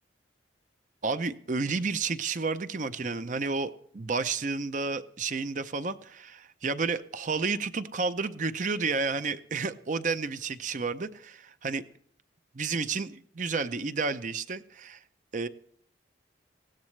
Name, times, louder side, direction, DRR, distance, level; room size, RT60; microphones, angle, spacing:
voice 1, 1.0-11.9 12.5-15.0 15.3-15.5, right 4 dB, 40° right, 12 dB, 0.6 m, -31 dB
19.5 x 16.5 x 3.2 m, 0.63 s
head